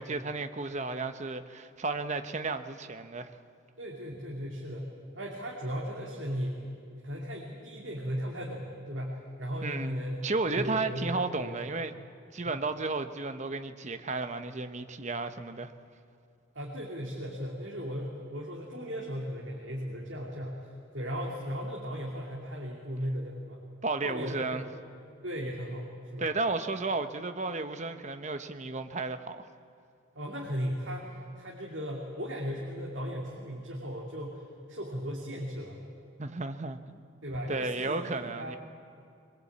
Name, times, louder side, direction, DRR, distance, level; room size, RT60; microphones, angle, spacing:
voice 1, 0.0-3.3 9.6-11.9 12.3-15.7 23.8-24.6 26.2-29.5 36.2-37.0 37.5-38.6, right 3 dB, 35° right, 9 dB, 0.9 m, -33 dB
voice 2, 3.8-4.9 5.1-6.7 7.0-11.7 16.5-23.6 24.0-24.6 25.2-25.9 26.1-26.3 30.1-35.8 37.2-38.6, equal, 65° right, -2 dB, 2.8 m, -37 dB
22.0 x 21.5 x 8.5 m, 2.5 s
head